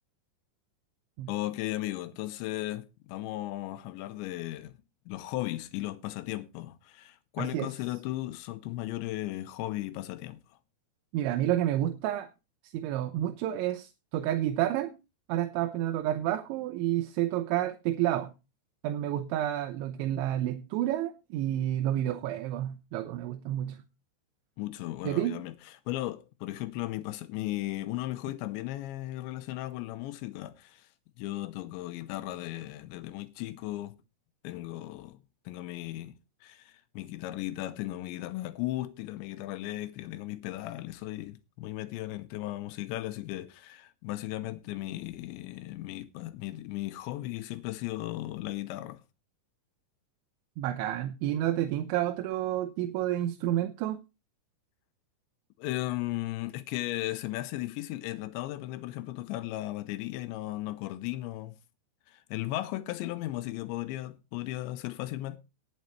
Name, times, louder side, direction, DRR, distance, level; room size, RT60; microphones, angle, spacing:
voice 1, 1.3-4.7 5.1-10.4 24.6-30.9 31.2-34.0 34.4-35.2 35.5-49.0 55.6-61.6 62.1-65.4, left 16 dB, 85° left, 3.0 m, -36 dB
voice 2, 7.4-7.7 11.1-12.3 12.6-14.9 15.3-18.3 18.8-23.8 25.0-25.4 50.6-54.0, right 12 dB, 85° right, 3.2 m, -30 dB
18.5 x 7.9 x 3.1 m
omnidirectional pair, 5.2 m